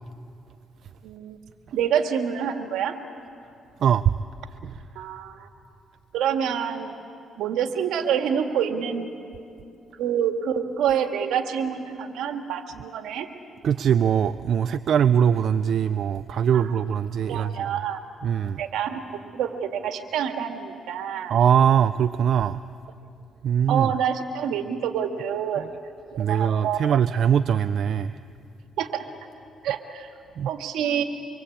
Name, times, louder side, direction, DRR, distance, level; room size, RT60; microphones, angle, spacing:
voice 1, 1.0-1.4 1.7-3.0 5.0-5.5 6.1-6.9 7.4-9.1 10.0-13.3 16.5-16.8 17.3-18.0 18.6-21.4 23.7-25.7 26.3-26.8 28.8-29.1 29.6-30.1 30.4-31.0, right 8 dB, 85° right, 5 dB, 1.9 m, -27 dB
voice 2, 3.8-4.1 4.6-4.8 13.6-17.5 18.2-18.6 21.3-22.6 23.4-23.9 26.2-28.1 30.4-30.5, right 8 dB, 65° right, 12 dB, 0.5 m, -21 dB
25.5 x 24.0 x 8.6 m, 2.5 s
cardioid pair, 90°, 0 cm